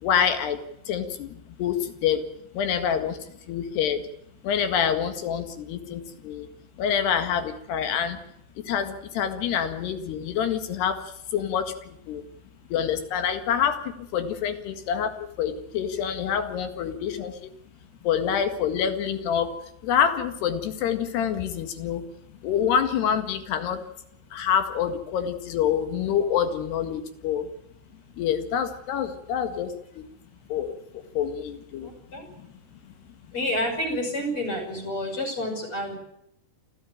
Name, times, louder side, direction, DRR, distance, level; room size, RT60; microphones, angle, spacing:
voice 1, 0.0-2.2 2.5-4.0 4.4-6.5 6.8-8.2 8.6-12.3 12.7-17.5 18.0-19.5 19.8-22.0 22.3-23.8 24.3-27.5 28.2-30.0 30.5-31.9 32.4-32.5, left 8 dB, 75° left, 8 dB, 3.9 m, -27 dB
voice 2, 31.8-32.3 33.3-36.0, left 1 dB, 30° left, 3 dB, 6.7 m, -29 dB
28.0 x 14.0 x 9.0 m, 0.77 s
omnidirectional pair, 4.8 m